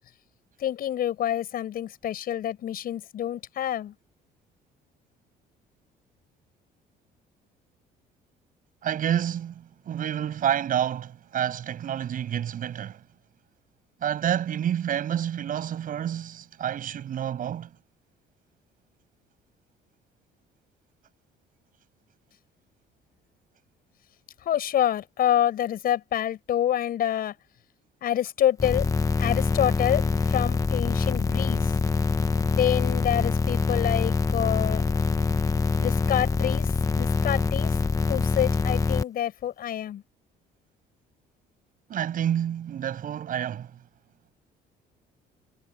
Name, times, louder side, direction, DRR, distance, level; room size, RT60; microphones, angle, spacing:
voice 1, 0.6-3.9 24.4-27.3 28.0-28.9 29.2-31.7 32.5-34.8 35.8-37.8 38.1-40.0, left 11 dB, 60° left, 7.0 m, -27 dB
voice 2, 8.8-13.0 14.0-17.7 41.9-43.8, right 10 dB, 55° right, 7.0 m, -29 dB
sound 1, 28.6-39.0, left 4 dB, 20° left, 1.1 m, -24 dB
cardioid pair, 110°, 17 cm